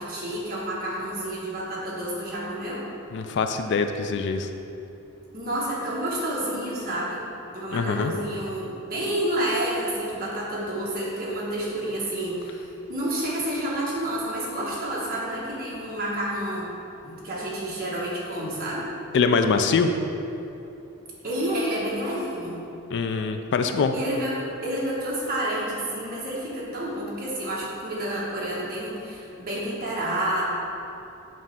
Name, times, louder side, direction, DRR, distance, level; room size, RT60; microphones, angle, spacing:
voice 1, 0.0-2.8 5.3-7.3 7.5-16.7 17.0-18.9 21.2-22.6 23.9-30.4, right 1 dB, 45° right, -6 dB, 1.5 m, -29 dB
voice 2, 3.1-4.5 7.7-8.1 19.1-19.9 22.9-23.9, left 5 dB, 55° left, 7 dB, 0.4 m, -23 dB
7.3 x 3.2 x 5.7 m, 2.9 s
head